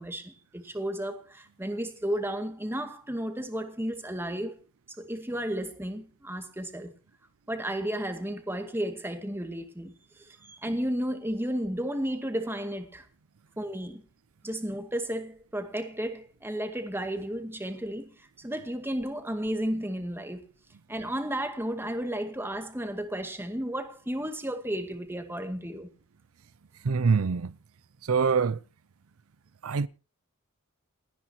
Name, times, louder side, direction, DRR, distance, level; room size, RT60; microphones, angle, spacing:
voice 1, 0.0-4.6 5.0-6.9 7.5-13.0 13.6-14.0 14.4-20.5 20.9-25.9, right 1 dB, 10° right, 2.1 m, -33 dB
voice 2, 26.8-27.5 28.1-28.6 29.6-29.9, right 5 dB, 90° right, 0.6 m, -24 dB
29.0 x 9.9 x 2.9 m
head